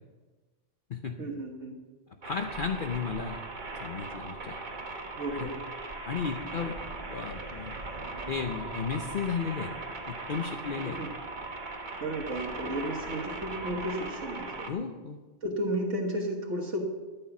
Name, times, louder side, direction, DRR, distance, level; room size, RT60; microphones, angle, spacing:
voice 1, 1.2-1.8 5.2-5.6 10.8-11.1 12.0-14.7 15.4-16.8, right 1 dB, 75° right, 0 dB, 1.8 m, -33 dB
voice 2, 2.2-3.4 3.8-4.6 5.4-5.5 6.0-6.7 7.1-7.7 8.0-9.7 10.1-11.0 14.7-15.2, left 6 dB, 50° left, 5 dB, 0.8 m, -34 dB
sound 1, 2.2-14.7, right 3 dB, 40° right, 1.3 m, -39 dB
13.5 x 9.0 x 6.0 m, 1.3 s
omnidirectional pair, 1.3 m